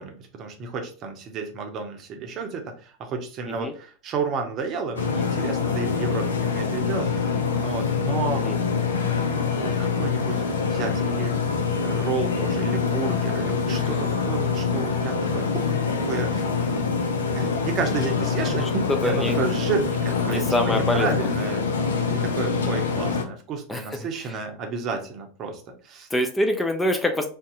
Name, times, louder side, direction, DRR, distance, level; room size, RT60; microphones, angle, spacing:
voice 1, 0.0-7.3 7.6-8.4 9.6-11.3 11.7-15.8 16.0-16.4 17.3-21.6 22.1-26.1, right 4 dB, 40° right, 3 dB, 0.7 m, -31 dB
sound 1, 5.0-23.2, left 5 dB, 80° left, 0.5 m, -25 dB
voice 2, 19.0-19.4 20.3-21.3 23.7-23.8 26.1-27.3, left 1 dB, 10° left, 5 dB, 0.4 m, -25 dB
2.7 x 2.2 x 3.7 m, 0.40 s
hypercardioid pair, 85°, 0 cm